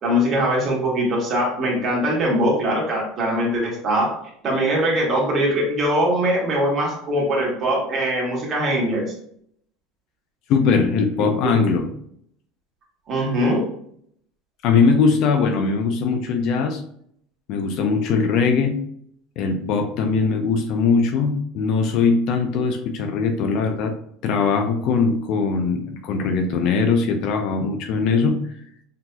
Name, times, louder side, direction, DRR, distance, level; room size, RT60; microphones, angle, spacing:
voice 1, 0.0-4.1 4.4-9.1 11.4-11.5 13.1-13.6, equal, 30° right, -3 dB, 1.4 m, -21 dB
voice 2, 10.5-11.9 14.6-16.8 17.5-18.8 19.4-23.9 24.2-28.4, left 5 dB, 50° left, 5 dB, 0.4 m, -20 dB
6.0 x 2.8 x 2.2 m, 0.67 s
cardioid pair, 165°, 0 cm